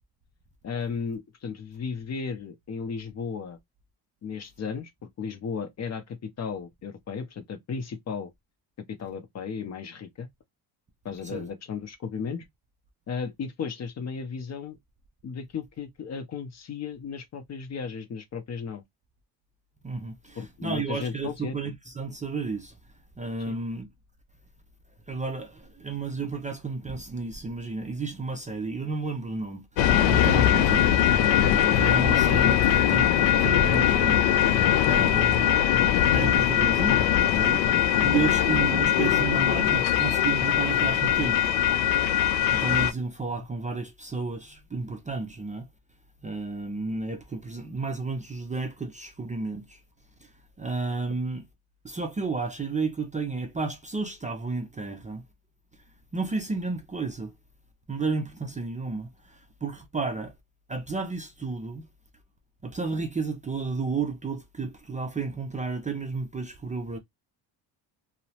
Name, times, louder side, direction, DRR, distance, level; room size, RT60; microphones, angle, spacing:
voice 1, 0.6-3.6 4.2-8.3 8.9-10.3 11.0-12.4 13.1-14.8 15.2-18.8 20.4-21.7 23.5-23.6, left 6 dB, 40° left, 0.6 m, -35 dB
voice 2, 19.8-22.8 23.2-23.9 25.1-31.1 31.7-34.5 34.8-35.6 36.1-41.4 42.5-45.7 46.2-49.8 50.2-51.5 51.8-55.2 56.1-57.3 57.9-60.3 60.7-61.9 62.6-67.0, right 4 dB, 15° right, 0.4 m, -32 dB
sound 1, 29.8-42.9, left 10 dB, 85° left, 0.5 m, -21 dB
2.8 x 2.0 x 2.7 m
cardioid pair, 90°, 44 cm